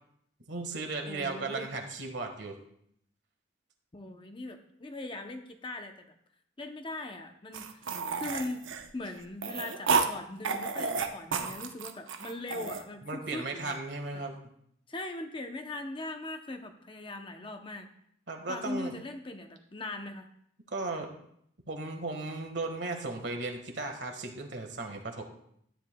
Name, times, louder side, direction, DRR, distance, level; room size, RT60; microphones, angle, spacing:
voice 1, 0.5-2.5 13.0-14.4 18.3-18.9 20.7-21.1 21.7-25.2, right 3 dB, 60° right, 4 dB, 1.5 m, -36 dB
voice 2, 1.1-1.7 3.9-6.1 6.6-13.8 14.1-14.2 14.9-17.9 18.5-20.3, left 2 dB, 25° left, 5 dB, 0.7 m, -40 dB
sound 1, 7.5-10.1 10.4-12.8, right 5 dB, 85° right, 0.8 m, -31 dB
13.0 x 9.5 x 2.2 m, 0.71 s
head